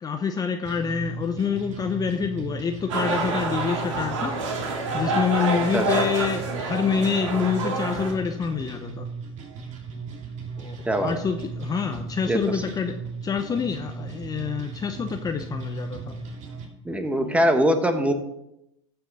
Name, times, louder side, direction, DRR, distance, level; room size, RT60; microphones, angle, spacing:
voice 1, 0.0-4.4 4.9-9.1 10.6-13.0 13.2-16.2 17.2-17.4, left 6 dB, 25° left, 6 dB, 0.7 m, -27 dB
sound 1, 0.6-16.6, right 5 dB, 45° right, 2.3 m, -37 dB
sound 2, 2.9-8.1, right 3 dB, 75° right, 2.4 m, -27 dB
voice 2, 5.7-6.1 10.9-11.1 12.3-12.6 16.8-18.1, equal, 10° right, 7 dB, 1.3 m, -22 dB
14.5 x 5.7 x 4.1 m, 0.84 s
hypercardioid pair, 95°, 16 cm